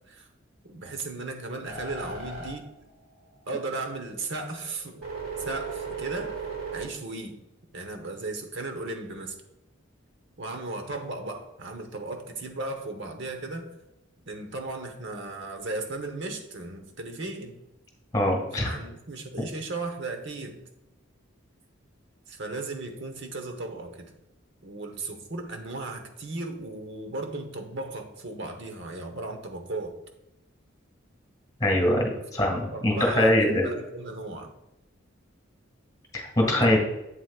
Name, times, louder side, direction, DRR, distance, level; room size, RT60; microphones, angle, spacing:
voice 1, 0.6-2.7 3.5-5.0 5.4-6.3 6.7-7.4 7.7-9.4 10.4-13.7 14.3-17.6 18.6-20.6 22.3-24.1 24.6-30.0 32.5-34.5 36.4-36.8, right 2 dB, 60° right, 5 dB, 1.1 m, -36 dB
sound 1, 1.7-3.5 3.9-6.8, right 4 dB, 90° right, 2.3 m, -37 dB
voice 2, 18.1-18.8 31.6-33.7 36.1-36.8, left 1 dB, 20° left, 0 dB, 2.1 m, -23 dB
8.1 x 7.9 x 2.4 m, 0.88 s
head